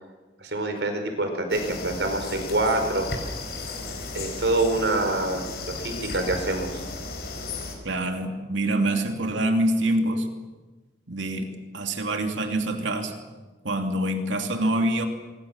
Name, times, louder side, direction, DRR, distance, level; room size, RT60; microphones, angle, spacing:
voice 1, 0.4-3.1 4.1-6.8, right 2 dB, 70° right, 6 dB, 4.7 m, -26 dB
sound 1, 1.5-7.7, left 3 dB, 55° left, 5.1 m, -35 dB
voice 2, 7.8-10.3 11.1-11.5 11.7-13.1 13.6-15.1, right 1 dB, 90° right, 5 dB, 2.8 m, -25 dB
25.5 x 23.5 x 7.3 m, 1.2 s
head